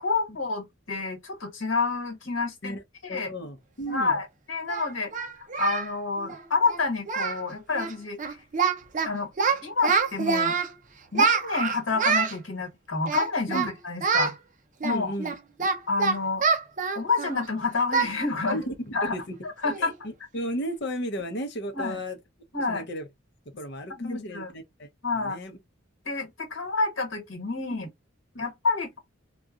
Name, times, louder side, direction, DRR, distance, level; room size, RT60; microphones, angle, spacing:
voice 1, 0.0-2.7 3.0-3.3 3.9-5.1 5.6-8.4 9.0-9.3 9.6-10.6 11.1-14.3 14.8-15.1 15.9-16.4 16.9-18.6 18.9-19.2 19.4-19.9 21.7-22.0 22.5-22.8 24.0-24.5 25.0-25.4 26.0-27.9 28.4-29.0, left 4 dB, 85° left, 1.3 m, -28 dB
voice 2, 3.1-4.2 13.5-13.7 14.8-15.7 18.5-19.3 19.8-22.2 22.7-23.0 23.6-24.9 25.1-25.6 27.7-27.9 28.3-28.4, equal, 60° left, 0.8 m, -34 dB
Singing, 3.9-4.0 4.7-5.9 6.2-6.4 6.7-6.8 7.1-7.4 7.7-7.9 8.2-9.1 9.4-10.7 11.1-12.4 13.0-13.7 14.0-14.3 14.8-17.4 17.9-18.1 18.5-18.6 19.1-19.2 19.6-19.9, right 5 dB, 40° right, 0.6 m, -26 dB
3.9 x 2.3 x 2.4 m
head